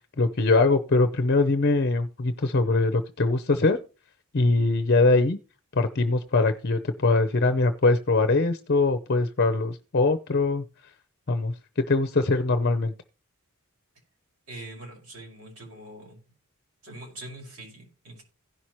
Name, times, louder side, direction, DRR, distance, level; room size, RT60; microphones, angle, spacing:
voice 1, 0.2-3.8 4.3-5.4 5.7-10.6 11.3-12.9, left 3 dB, 50° left, 10 dB, 0.7 m, -22 dB
voice 2, 14.5-16.2 16.8-18.2, right 1 dB, 80° right, -1 dB, 5.7 m, -43 dB
16.5 x 5.8 x 3.1 m, 0.34 s
head